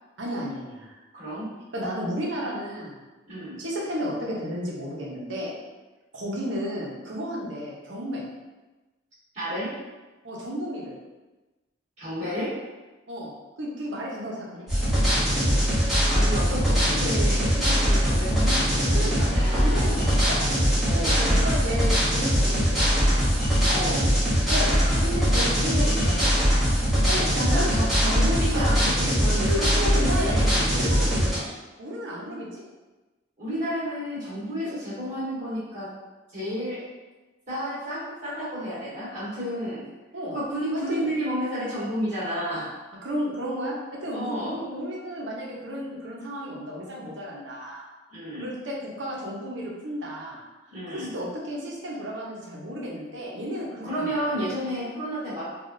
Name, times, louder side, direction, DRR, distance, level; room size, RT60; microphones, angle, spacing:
voice 1, 0.2-1.0 1.7-3.0 3.6-5.5 6.1-8.2 10.2-10.9 13.1-13.3 13.6-14.7 18.9-20.5 21.2-23.0 24.5-24.7 25.0-26.4 27.1-27.7 28.5-28.7 29.5-31.4 31.8-32.6 34.7-34.8 40.1-40.4 40.7-41.1 43.0-47.9 48.4-50.4 50.9-54.4, equal, 70° right, -4 dB, 0.7 m, -33 dB
voice 2, 1.1-1.5 3.3-3.6 9.3-9.7 12.0-12.5 16.1-19.4 19.9-20.1 20.9-21.3 23.7-24.1 27.4-30.7 33.4-35.9 36.3-36.8 37.5-39.8 40.3-42.7 44.1-44.6 48.1-48.5 50.7-51.1 53.8-55.4, equal, 35° right, -11 dB, 1.4 m, -31 dB
sound 1, 14.7-31.4, equal, ahead, 1.0 m, -22 dB
3.4 x 2.3 x 2.6 m, 1.2 s
head